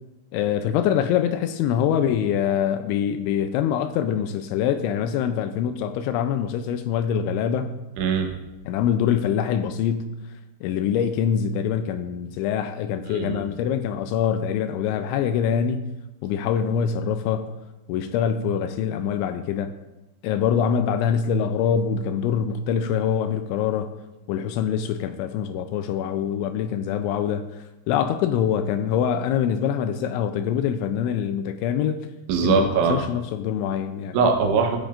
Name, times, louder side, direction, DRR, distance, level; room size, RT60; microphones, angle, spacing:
voice 1, 0.3-7.7 8.7-10.1 10.6-15.9 16.2-17.5 17.9-19.7 20.2-23.9 24.3-27.4 27.9-32.1 32.4-34.2, left 8 dB, 85° left, 9 dB, 2.8 m, -24 dB
voice 2, 8.0-8.3 13.1-13.4 32.3-33.0 34.1-34.8, right 5 dB, 80° right, 3 dB, 3.4 m, -21 dB
15.0 x 8.7 x 2.5 m, 1.0 s
omnidirectional pair, 5.5 m